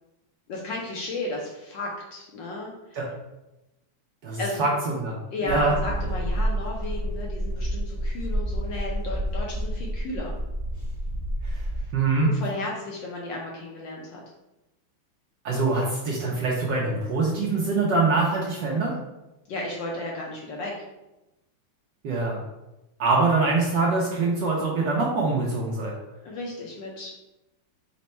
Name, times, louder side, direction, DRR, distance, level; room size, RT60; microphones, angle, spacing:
voice 1, 0.5-3.0 4.4-4.8 5.3-10.3 12.2-14.2 19.5-20.8 26.2-27.1, left 2 dB, 75° left, -2 dB, 1.1 m, -34 dB
voice 2, 4.2-5.2 5.4-5.7 11.4-11.6 11.9-12.3 15.4-18.9 22.0-22.4 23.0-25.9, right 3 dB, 75° right, -3 dB, 1.1 m, -24 dB
sound 1, 5.5-11.9, equal, 20° left, 0.4 m, -29 dB
4.3 x 2.1 x 4.1 m, 0.97 s
omnidirectional pair, 2.4 m